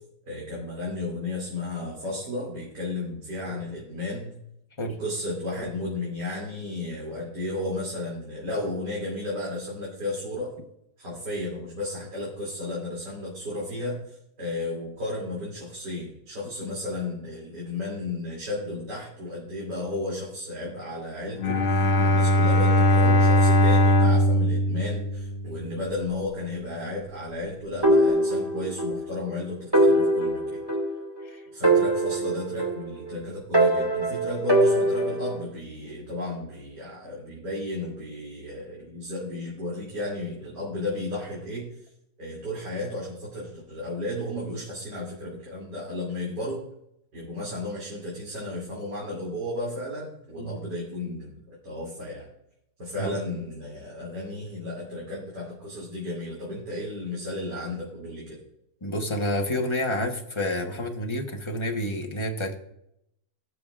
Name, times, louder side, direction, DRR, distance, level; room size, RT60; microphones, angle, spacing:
voice 1, 0.2-4.3 4.8-10.5 11.0-30.6 31.5-41.7 42.2-46.6 47.1-52.3 52.8-58.4, left 2 dB, 85° right, -5 dB, 3.4 m, -33 dB
Bowed string instrument, 21.4-25.8, left 1 dB, 50° left, 1.2 m, -20 dB
sound 1, 27.8-29.0 29.3-29.4 29.7-31.2 31.6-33.1 33.5-35.4, right 1 dB, 15° right, 2.1 m, -22 dB
voice 2, 58.8-62.5, left 1 dB, 20° left, 1 dB, 0.9 m, -29 dB
18.0 x 6.9 x 2.4 m, 0.78 s
omnidirectional pair, 1.8 m